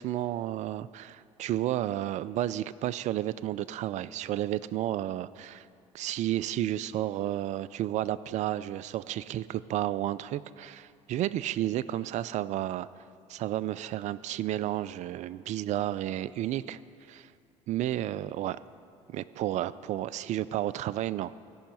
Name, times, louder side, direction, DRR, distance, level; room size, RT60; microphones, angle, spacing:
voice 1, 0.0-5.7 5.9-12.9 13.3-16.8 17.1-17.3 17.7-18.6 19.1-21.4, right 13 dB, 50° right, 18 dB, 0.4 m, -32 dB
16.5 x 5.6 x 5.2 m, 2.4 s
hypercardioid pair, 65°, 16 cm